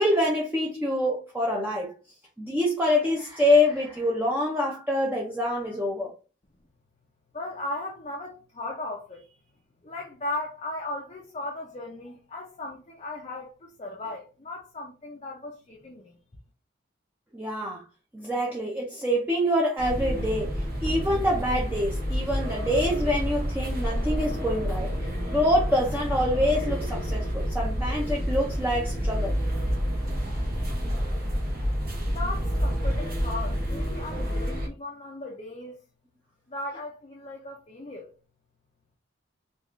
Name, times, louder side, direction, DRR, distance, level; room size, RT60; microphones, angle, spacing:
voice 1, 0.0-1.9 2.4-6.1 17.3-17.8 18.1-24.9 25.3-29.3, left 1 dB, 10° right, 0.6 m, -26 dB
voice 2, 7.3-9.4 9.8-16.2 32.1-35.8 36.5-38.1, left 2 dB, 30° left, 0.5 m, -37 dB
sound 1, 19.8-34.7, equal, 45° right, 1.1 m, -29 dB
3.6 x 2.4 x 3.1 m
head